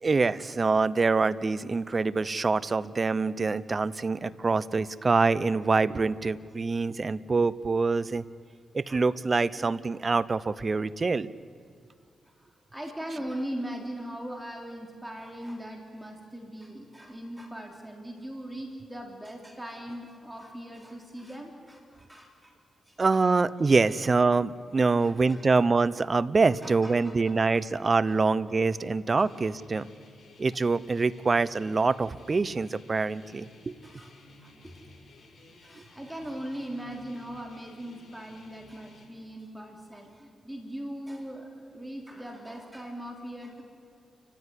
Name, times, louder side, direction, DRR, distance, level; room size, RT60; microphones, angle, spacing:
voice 1, 0.0-8.2 8.7-11.3 23.0-29.9 30.4-33.8, right 4 dB, 40° right, 18 dB, 0.8 m, -25 dB
voice 2, 12.2-22.5 22.8-23.3 23.6-23.9 24.9-25.4 26.4-27.6 28.0-28.2 28.4-28.5 28.8-29.3 33.8-34.1 34.4-34.8 35.6-43.6, equal, 10° right, 2 dB, 3.4 m, -40 dB
sound 1, 29.3-39.1, left 2 dB, 60° left, 5.4 m, -55 dB
29.5 x 15.0 x 9.8 m, 2.2 s
cardioid pair, 60°, 0 cm